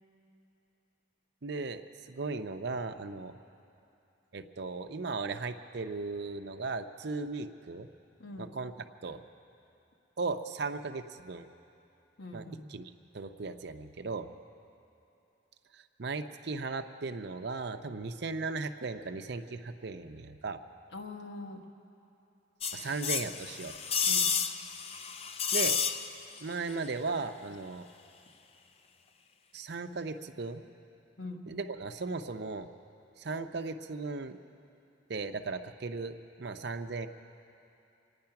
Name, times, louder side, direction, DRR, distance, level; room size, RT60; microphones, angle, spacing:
voice 1, 1.4-3.3 4.3-7.9 8.4-8.7 9.0-9.2 10.2-11.5 12.3-12.4 12.7-14.3 15.7-20.6 22.7-23.7 25.5-25.8 26.4-27.9 29.5-30.6 31.5-32.7 33.2-34.4 35.1-37.1, right 3 dB, 60° right, 8 dB, 0.6 m, -37 dB
voice 2, 8.2-8.5 12.2-12.7 20.9-21.7 24.0-24.4 31.2-31.5, left 2 dB, 65° left, 3 dB, 1.2 m, -43 dB
sound 1, 22.6-26.4 26.7-26.8, left 6 dB, 30° left, 0.5 m, -31 dB
25.5 x 9.7 x 5.8 m, 2.8 s
head